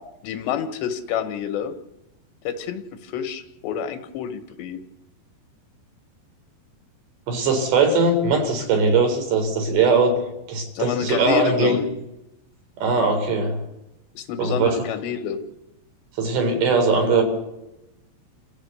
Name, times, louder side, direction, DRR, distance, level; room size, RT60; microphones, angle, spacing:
voice 1, 0.2-1.7 2.5-4.8 10.8-11.9 14.2-15.4, left 8 dB, 80° left, 7 dB, 3.8 m, -28 dB
voice 2, 7.3-10.2 10.5-11.8 12.8-13.6 14.4-14.8 16.2-17.2, right 4 dB, 80° right, 3 dB, 6.0 m, -20 dB
28.5 x 14.5 x 8.3 m, 0.93 s
omnidirectional pair, 5.0 m